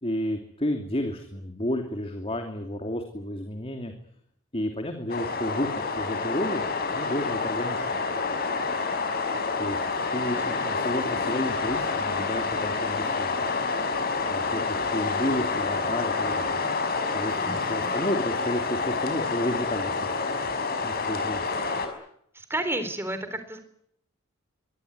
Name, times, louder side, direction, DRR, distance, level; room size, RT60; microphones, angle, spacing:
voice 1, 0.0-3.9 4.5-6.7 6.9-7.9 9.6-9.8 10.1-13.4 14.3-16.5 17.1-20.2 20.8-21.5, left 1 dB, 30° left, 5 dB, 2.7 m, -31 dB
sound 1, 5.1-21.9, left 4 dB, 45° left, 5.4 m, -28 dB
voice 2, 17.4-17.9 21.6-21.8 22.3-23.6, right 1 dB, 10° right, 10 dB, 3.9 m, -32 dB
24.0 x 20.0 x 9.5 m, 0.70 s
head